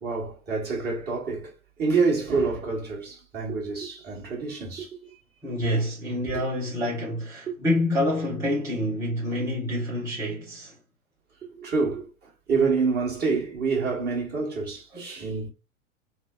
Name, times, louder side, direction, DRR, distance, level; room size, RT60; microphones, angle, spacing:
voice 1, 0.0-1.5 1.8-4.9 6.3-6.4 7.5-7.6 11.6-12.1 12.5-15.5, right 4 dB, 25° right, 1.6 m, -27 dB
voice 2, 5.4-10.7 14.9-15.1, left 1 dB, 5° right, 1.1 m, -27 dB
3.1 x 2.1 x 3.6 m
hypercardioid pair, 100°, 41 cm